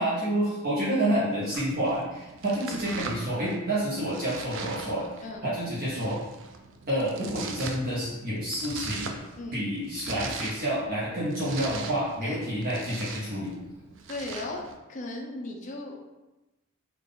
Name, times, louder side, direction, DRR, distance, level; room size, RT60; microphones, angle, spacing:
voice 1, 0.0-5.1 5.4-6.2 6.9-9.2 9.5-13.5, right 1 dB, 45° right, -9 dB, 0.9 m, -29 dB
Domestic sounds home sounds, 1.5-14.8, right 5 dB, 60° right, 0.4 m, -42 dB
voice 2, 14.1-16.0, left 2 dB, 35° left, 0 dB, 0.5 m, -37 dB
3.6 x 2.4 x 3.8 m, 1.0 s
head